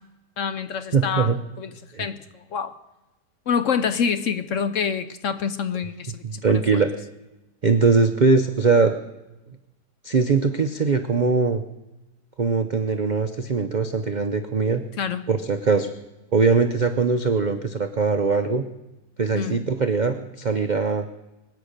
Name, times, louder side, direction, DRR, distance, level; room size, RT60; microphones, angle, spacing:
voice 1, 0.4-2.8 3.5-6.6 15.0-15.3 19.3-19.6, left 6 dB, 60° left, 11 dB, 0.9 m, -27 dB
voice 2, 0.9-1.4 1.9-2.1 6.2-6.9 7.6-9.0 10.0-11.6 12.4-14.8 15.3-15.9 16.3-18.6 19.2-21.1, right 4 dB, 65° right, 7 dB, 0.4 m, -21 dB
24.0 x 8.6 x 6.5 m, 1.0 s
omnidirectional pair, 1.8 m